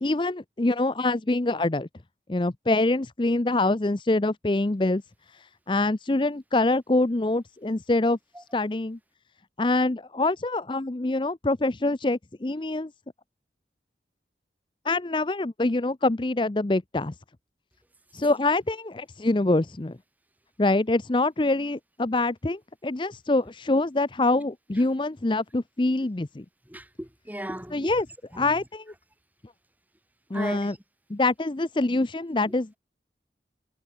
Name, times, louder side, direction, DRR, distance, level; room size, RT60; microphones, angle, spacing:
voice 1, 0.0-1.9 2.3-5.0 5.7-8.2 8.5-9.0 9.6-12.9 14.8-17.1 18.1-20.0 20.6-26.4 27.7-28.1 28.4-28.8 30.3-30.7 31.1-32.7, left 2 dB, 25° left, 0.6 m, -25 dB
voice 2, 26.7-27.9 28.3-28.5 30.3-30.8, right 1 dB, 10° right, 4.5 m, -37 dB
head